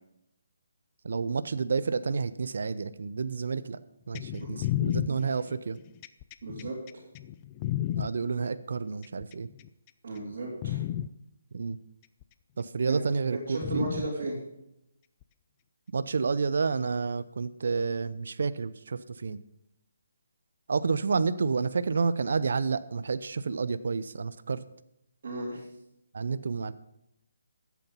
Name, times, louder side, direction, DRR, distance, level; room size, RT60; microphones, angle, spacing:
voice 1, 1.0-3.8 4.1-5.8 8.0-9.5 11.5-11.8 12.6-13.9 15.9-19.4 20.7-24.6 26.1-26.7, right 5 dB, 65° right, 14 dB, 0.6 m, -30 dB
sound 1, 4.1-8.1 9.0-9.7 10.2-10.3 10.6-11.1 12.2-12.3 13.6-14.1 15.2-15.3, left 12 dB, 25° left, 0.4 m, -32 dB
voice 2, 6.4-6.8 10.0-10.8 12.9-13.0 13.3-14.4 25.2-25.6, right 2 dB, 50° right, -7 dB, 3.6 m, -34 dB
13.0 x 8.3 x 5.6 m, 0.83 s
figure-of-eight pair, 150°, 0 cm